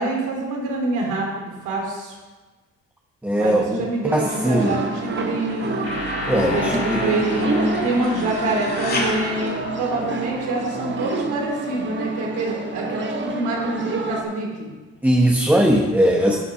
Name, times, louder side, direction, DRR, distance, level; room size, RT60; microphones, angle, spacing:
voice 1, 0.0-2.2 3.4-5.8 6.3-14.7 16.2-16.4, right 2 dB, 85° right, -1 dB, 2.7 m, -26 dB
voice 2, 3.2-4.8 6.3-7.4 15.0-16.4, right 1 dB, 5° right, 0 dB, 0.9 m, -20 dB
sound 1, 4.1-14.2, right 3 dB, 40° right, 1.1 m, -29 dB
sound 2, 4.2-10.5, left 2 dB, 30° left, 2.0 m, -34 dB
sound 3, 5.8-10.7, left 2 dB, 50° left, 2.8 m, -32 dB
10.5 x 5.7 x 5.7 m, 1.3 s
cardioid pair, 90°, 30 cm